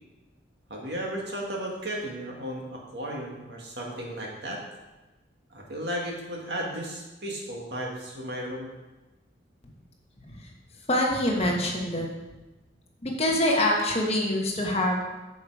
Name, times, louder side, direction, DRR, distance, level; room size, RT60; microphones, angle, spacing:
voice 1, 0.7-4.6 5.5-8.7, right 1 dB, 60° right, -1 dB, 1.9 m, -34 dB
voice 2, 10.9-12.1 13.0-15.0, left 1 dB, 35° left, 0 dB, 1.3 m, -25 dB
7.7 x 7.1 x 4.8 m, 1.1 s
head